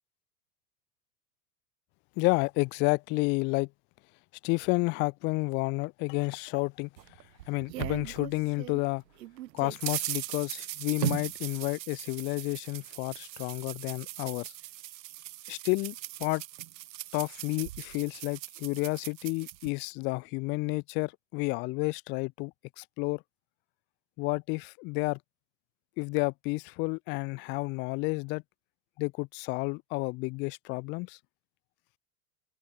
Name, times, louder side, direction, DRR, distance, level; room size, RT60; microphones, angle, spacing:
voice 1, 2.2-3.7 4.4-6.9 7.5-9.0 9.5-14.5 15.5-15.9 16.2-16.4 17.1-22.5 22.8-23.2 24.2-25.2 26.0-28.4 29.0-31.2, left 27 dB, 25° left, 0.4 m, -30 dB
sound 1, 7.0-8.8 9.2-19.7, right 15 dB, 90° right, 2.1 m, -39 dB
open air
supercardioid pair, 150°, 49 cm